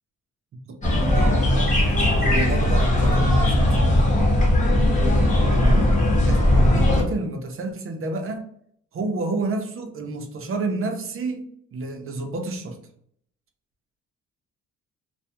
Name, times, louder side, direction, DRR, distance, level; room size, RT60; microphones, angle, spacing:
sound 1, 0.8-7.0, left 1 dB, 25° left, 0.9 m, -18 dB
voice 1, 1.1-3.9 5.5-5.9 6.2-6.4 6.6-8.5 8.9-12.8, right 3 dB, 45° right, 4 dB, 0.5 m, -30 dB
2.4 x 2.1 x 2.8 m, 0.66 s
cardioid pair, 90°, 30 cm